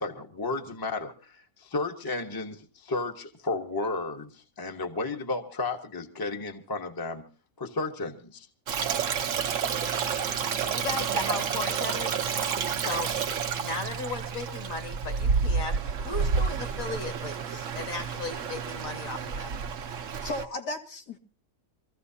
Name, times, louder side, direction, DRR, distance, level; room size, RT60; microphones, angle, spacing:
voice 1, 0.0-7.3 7.6-8.5, left 3 dB, 15° left, 4 dB, 1.0 m, -33 dB
Stream, 8.7-20.4, right 6 dB, 55° right, 1.2 m, -30 dB
voice 2, 10.5-12.2 12.8-13.1 13.6-19.6, left 3 dB, 55° left, 5 dB, 2.3 m, -36 dB
voice 3, 20.0-21.2, left 1 dB, 75° left, 2 dB, 2.5 m, -35 dB
25.5 x 15.0 x 2.8 m, 0.36 s
omnidirectional pair, 1.8 m